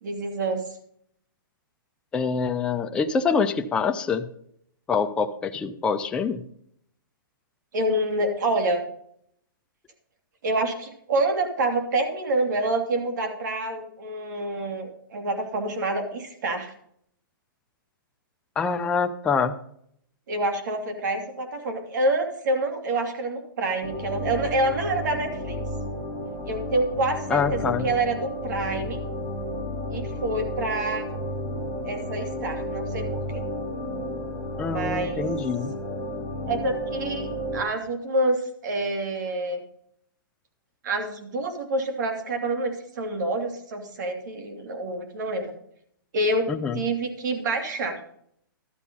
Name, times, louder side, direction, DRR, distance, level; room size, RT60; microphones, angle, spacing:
voice 1, 0.0-0.6 7.7-8.8 10.4-16.7 20.3-25.6 26.5-29.0 29.9-31.0 31.8-33.4 34.7-35.2 36.5-39.6 40.8-45.5 46.1-48.0, right 2 dB, 55° right, 6 dB, 2.7 m, -27 dB
voice 2, 2.1-4.3 4.9-6.4 18.6-19.6 27.3-27.9 34.6-35.7 46.5-46.8, left 5 dB, 10° left, 5 dB, 0.5 m, -25 dB
sound 1, 23.8-37.6, equal, 10° right, 2.4 m, -32 dB
12.5 x 7.3 x 5.4 m, 0.68 s
hypercardioid pair, 160°, 12 cm